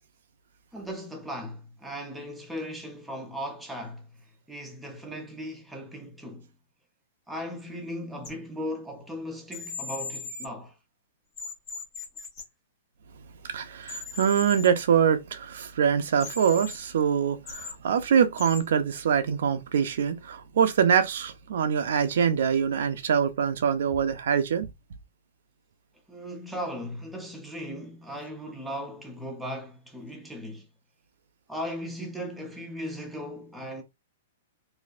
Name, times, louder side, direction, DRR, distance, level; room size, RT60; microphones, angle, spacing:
voice 1, 0.7-4.1 4.5-6.5 7.3-10.7 26.1-30.7 31.5-33.8, equal, ahead, 0.5 m, -37 dB
sound 1, 8.2-8.3 9.5-10.5 11.4-12.4 13.8-14.7 16.2-16.8 17.5-17.7 18.4-18.6, left 4 dB, 15° left, 1.0 m, -38 dB
voice 2, 13.5-24.7, right 7 dB, 60° right, 0.5 m, -24 dB
4.0 x 2.6 x 2.5 m
hypercardioid pair, 180°, 0 cm